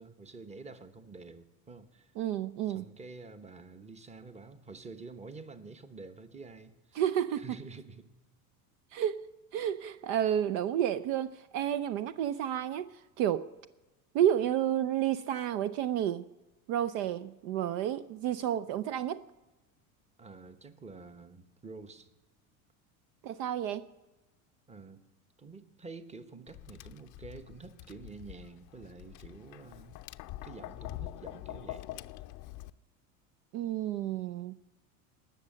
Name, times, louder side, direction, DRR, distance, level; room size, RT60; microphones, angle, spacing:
voice 1, 0.0-2.1 2.7-7.0 7.4-8.1 20.2-22.1 24.7-25.0 25.4-30.0 30.4-31.9, right 4 dB, 15° right, 1.0 m, -48 dB
voice 2, 2.2-2.9 6.9-7.5 8.9-13.5 14.1-16.3 16.7-19.3 23.2-23.9 33.5-34.5, right 10 dB, 60° right, 0.6 m, -31 dB
Tap, 26.5-32.7, left 15 dB, 45° left, 0.5 m, -45 dB
19.5 x 6.5 x 7.6 m
supercardioid pair, 100°, 42 cm